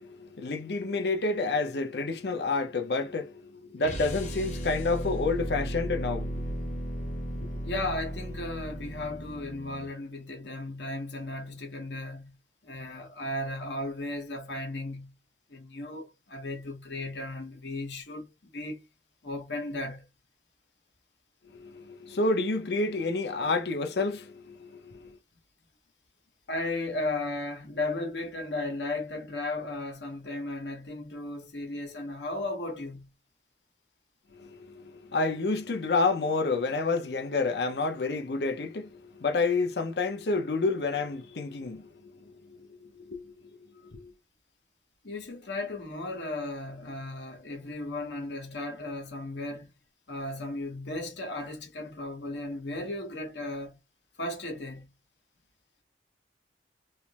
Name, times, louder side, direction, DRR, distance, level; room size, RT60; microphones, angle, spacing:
voice 1, 0.0-6.4 21.5-25.1 34.3-43.3 43.9-44.1, left 3 dB, 65° left, 0.6 m, -29 dB
sound 1, 3.8-9.9, equal, 45° left, 0.9 m, -35 dB
voice 2, 7.6-12.4 12.6-15.1 15.5-18.8 19.2-20.1 26.5-33.1 45.0-49.7 50.1-53.8 54.2-54.9, left 2 dB, 85° left, 1.2 m, -35 dB
3.3 x 2.0 x 2.9 m
head